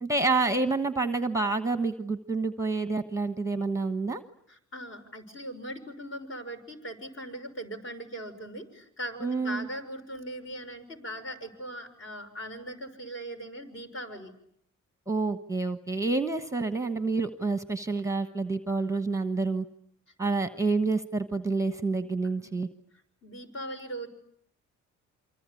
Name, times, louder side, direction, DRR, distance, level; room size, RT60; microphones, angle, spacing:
voice 1, 0.0-4.2 9.2-9.7 15.1-19.6 20.2-22.7, right 3 dB, 10° right, 9 dB, 1.2 m, -28 dB
voice 2, 4.5-14.3 20.2-20.3 22.2-22.5 23.2-24.1, right 1 dB, 40° left, 7 dB, 6.1 m, -40 dB
28.0 x 25.0 x 8.5 m, 0.69 s
cardioid pair, 90°, 30 cm